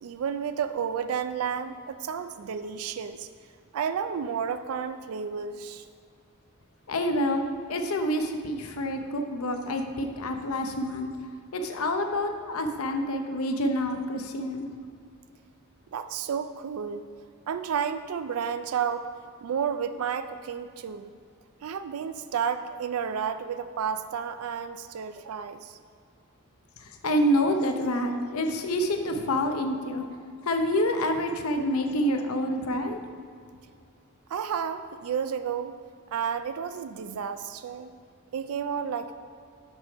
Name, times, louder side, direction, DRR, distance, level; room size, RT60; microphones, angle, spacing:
voice 1, 0.0-3.3 3.7-5.8 15.9-17.0 17.5-19.1 19.4-21.1 21.6-25.8 34.3-35.7 36.1-37.9 38.3-39.1, right 7 dB, 75° right, 10 dB, 0.4 m, -31 dB
voice 2, 6.9-11.1 11.5-14.7 27.0-30.0 30.5-33.0, equal, 75° left, 5 dB, 0.7 m, -27 dB
6.6 x 6.2 x 5.0 m, 2.3 s
head